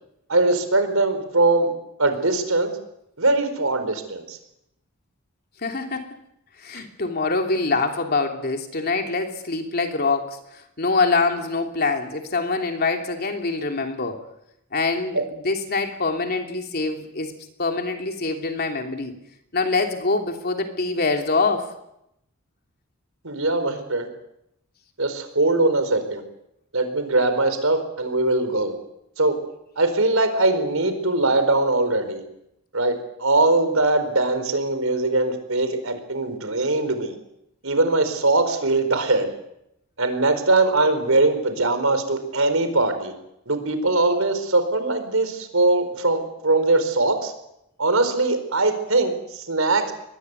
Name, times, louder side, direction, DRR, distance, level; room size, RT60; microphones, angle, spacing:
voice 1, 0.3-1.7 2.0-2.7 3.2-4.4 15.1-15.2 23.2-24.1 25.0-26.2 26.7-28.7 29.2-29.4 29.8-32.2 32.7-37.1 37.6-39.3 40.0-43.1 43.5-47.3 47.8-49.9, right 2 dB, 90° right, 9 dB, 4.5 m, -21 dB
voice 2, 5.6-6.1 6.6-14.2 14.7-19.1 19.5-21.7, left 3 dB, 50° left, 4 dB, 3.1 m, -25 dB
23.0 x 21.0 x 8.2 m, 0.81 s
head